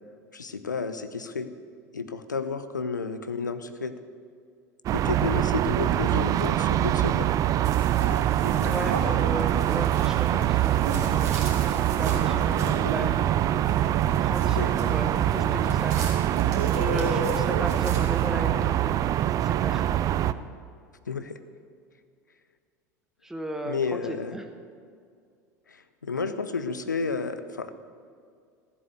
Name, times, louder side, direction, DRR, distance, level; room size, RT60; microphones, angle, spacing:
voice 1, 0.3-1.5 1.9-3.9 4.9-7.3 14.5-14.7 21.1-21.4 23.7-24.4 25.7-27.7, left 5 dB, 85° left, 11 dB, 0.7 m, -31 dB
sound 1, 4.9-20.3, right 12 dB, 35° right, 0.5 m, -24 dB
sound 2, 7.6-18.3, right 2 dB, 70° right, 2.7 m, -35 dB
voice 2, 8.6-13.5 14.2-16.1 16.7-20.1 23.2-24.4, right 1 dB, 5° right, 5 dB, 1.1 m, -36 dB
14.5 x 7.7 x 8.0 m, 2.2 s
figure-of-eight pair, 75°, 10 cm